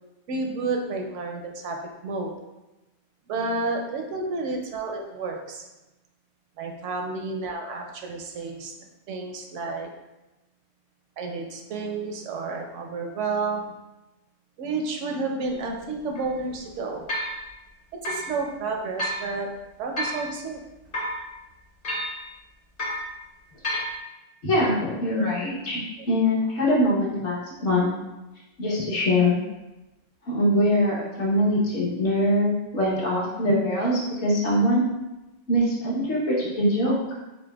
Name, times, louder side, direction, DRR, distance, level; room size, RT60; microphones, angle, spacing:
voice 1, 0.3-2.3 3.3-5.6 6.6-8.7 9.1-9.9 11.2-13.6 14.6-17.0 18.0-19.5 19.8-20.6 26.0-26.1, right 3 dB, 80° right, 2 dB, 1.0 m, -30 dB
sound 1, 15.4-15.5 16.1-16.3 17.1-17.4 18.0-18.3 19.0-19.2 20.0-20.3 20.9-21.2 21.8-22.2 22.8-23.1 23.6-23.9, equal, 50° left, 1.0 m, -29 dB
voice 2, 24.4-25.8 26.1-27.9 28.6-29.4 30.3-34.9 35.5-37.0, left 1 dB, 65° left, -6 dB, 1.3 m, -23 dB
6.5 x 2.2 x 2.3 m, 1.0 s
omnidirectional pair, 1.3 m